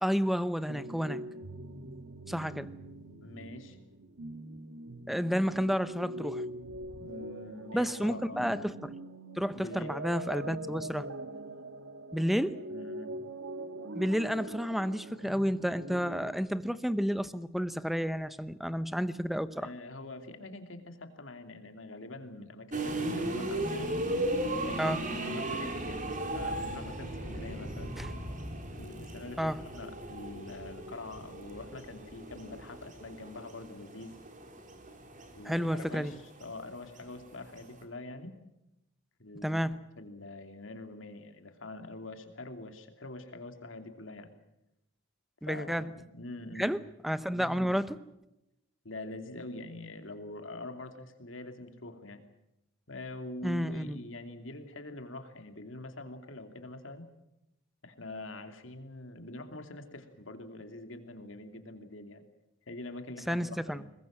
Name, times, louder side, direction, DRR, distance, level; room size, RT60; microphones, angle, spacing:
voice 1, 0.0-1.2 2.3-2.7 5.1-6.4 7.7-8.9 9.4-11.1 12.1-12.6 13.9-19.7 24.8-25.0 28.0-28.1 29.4-29.6 35.4-36.1 39.4-39.8 45.4-45.9 46.6-48.0 53.4-54.0 63.3-63.8, equal, ahead, 14 dB, 0.9 m, -31 dB
sound 1, 0.7-16.4, right 1 dB, 85° right, 1.7 m, -43 dB
voice 2, 3.2-3.8 6.9-8.4 9.5-9.9 12.7-13.1 19.6-24.0 24.7-27.9 28.7-34.2 35.4-38.4 39.2-39.7 40.0-44.3 45.5-46.7 47.4-47.8 48.8-52.2 52.9-57.1 57.8-62.2 62.7-63.9, left 2 dB, 70° left, 7 dB, 2.8 m, -44 dB
sound 2, 22.7-37.8, right 1 dB, 40° right, 3.5 m, -37 dB
22.0 x 21.0 x 7.4 m, 0.89 s
head